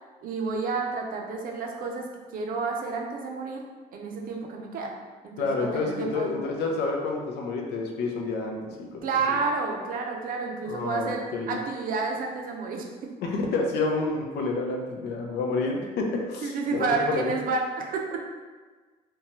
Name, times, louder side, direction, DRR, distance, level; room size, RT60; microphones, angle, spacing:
voice 1, 0.2-2.1 2.3-3.6 3.9-4.9 5.2-6.3 9.0-12.9 16.4-18.2, right 4 dB, 55° right, 1 dB, 0.5 m, -30 dB
voice 2, 5.4-9.0 9.3-9.4 10.6-11.6 13.2-17.4, left 3 dB, 80° left, 1 dB, 0.5 m, -29 dB
2.7 x 2.2 x 2.9 m, 1.4 s
cardioid pair, 110°, 17 cm